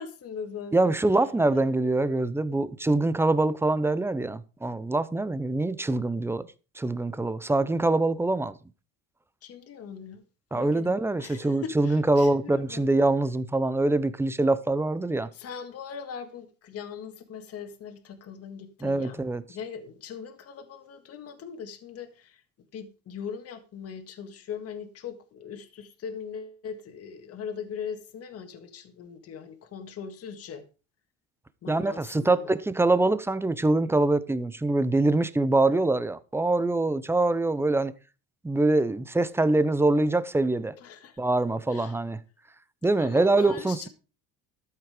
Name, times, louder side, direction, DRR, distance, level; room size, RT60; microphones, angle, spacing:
voice 1, 0.0-0.9 1.5-1.9 9.4-10.2 10.5-12.9 15.2-19.2 19.5-22.4 22.7-30.6 31.6-32.6 40.8-41.2 41.7-42.0 42.9-43.9, left 7 dB, 45° left, 1.9 m, -40 dB
voice 2, 0.7-6.5 6.8-8.6 10.5-15.3 18.8-19.4 31.7-37.9 38.4-40.7 41.2-42.2 42.8-43.9, right 2 dB, 5° right, 0.7 m, -24 dB
13.0 x 7.9 x 5.0 m
cardioid pair, 135°, 34 cm